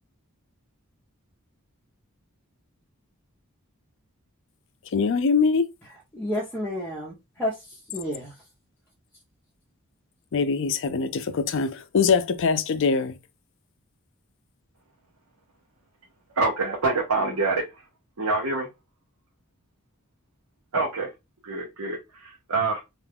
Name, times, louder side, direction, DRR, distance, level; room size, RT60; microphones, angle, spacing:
voice 1, 4.9-5.6 10.3-13.2, left 5 dB, 60° left, 0.4 m, -23 dB
voice 2, 6.1-8.3, left 1 dB, 10° left, 0.6 m, -31 dB
voice 3, 16.4-17.6 18.2-18.7 20.7-21.1 21.4-22.8, right 3 dB, 80° right, 0.8 m, -26 dB
2.4 x 2.3 x 3.5 m
head